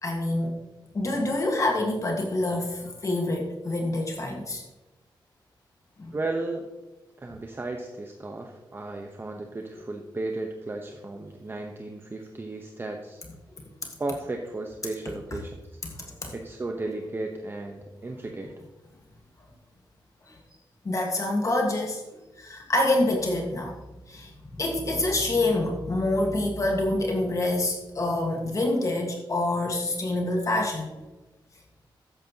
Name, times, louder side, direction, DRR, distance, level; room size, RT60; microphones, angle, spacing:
voice 1, 0.0-0.5 0.9-4.6 6.0-6.1 16.0-16.3 20.3-20.4 20.8-22.0 22.4-23.7 24.1-30.9, left 2 dB, 40° left, 1 dB, 1.6 m, -26 dB
voice 2, 6.1-6.7 7.2-13.2 14.0-15.8 16.3-18.6, right 2 dB, 25° right, 3 dB, 1.0 m, -34 dB
12.5 x 9.3 x 3.0 m, 1.1 s
cardioid pair, 85°, 8 cm